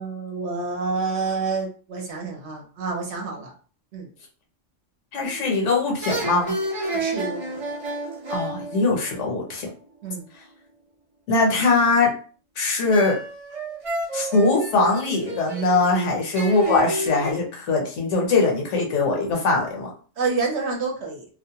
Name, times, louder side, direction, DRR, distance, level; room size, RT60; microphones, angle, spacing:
voice 1, 0.0-3.5 3.9-4.1 6.9-7.5 10.0-10.2 20.2-21.3, right 4 dB, 65° right, 0 dB, 0.9 m, -28 dB
voice 2, 5.1-6.5 8.3-9.7 11.3-12.1 12.6-13.2 14.1-19.9, left 3 dB, 70° left, 0 dB, 1.0 m, -21 dB
sound 1, 5.2-5.6 6.0-9.7 12.9-17.3, right 2 dB, 40° right, 0.5 m, -31 dB
2.4 x 2.1 x 2.8 m, 0.40 s
omnidirectional pair, 1.3 m